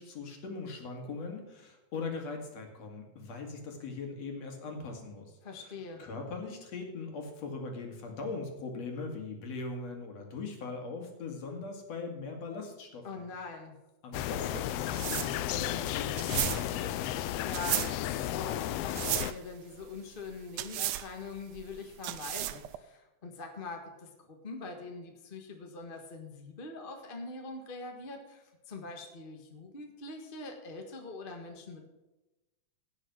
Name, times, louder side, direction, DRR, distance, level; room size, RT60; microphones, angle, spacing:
voice 1, 0.0-5.3 5.6-5.7 6.0-13.3 14.0-17.3, left 4 dB, 60° left, 3 dB, 3.0 m, -40 dB
voice 2, 5.4-6.0 13.0-13.7 17.3-31.9, left 3 dB, 25° left, 3 dB, 1.1 m, -43 dB
sound 1, 14.1-19.3, left 13 dB, 90° left, 1.4 m, -33 dB
sound 2, 14.4-22.8, right 15 dB, 90° right, 2.1 m, -36 dB
16.5 x 6.3 x 6.1 m, 1.0 s
omnidirectional pair, 3.4 m